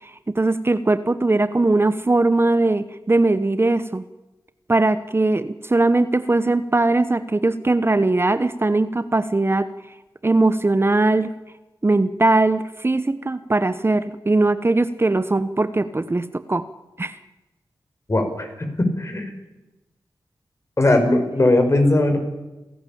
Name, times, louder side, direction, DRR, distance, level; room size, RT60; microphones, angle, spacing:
voice 1, 0.0-4.0 4.7-9.7 10.2-11.3 11.8-16.6 17.0-17.2, right 2 dB, 30° right, 13 dB, 0.9 m, -20 dB
voice 2, 18.1-18.5 18.8-19.3 20.8-22.2, left 2 dB, 35° left, 5 dB, 5.4 m, -18 dB
29.0 x 11.0 x 8.6 m, 1.1 s
cardioid pair, 50°, 8 cm